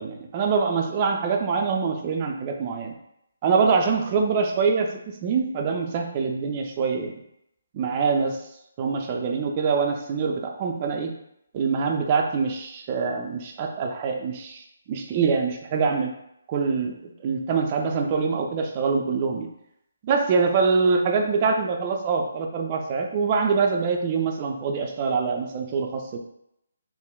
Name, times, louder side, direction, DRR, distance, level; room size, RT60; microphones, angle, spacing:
voice 1, 0.0-2.9 3.4-7.2 7.7-8.4 8.8-11.1 11.5-16.1 16.5-19.5 20.0-26.2, right 5 dB, 25° right, 2 dB, 0.3 m, -24 dB
3.4 x 2.1 x 2.3 m, 0.78 s
figure-of-eight pair, 140°, 0 cm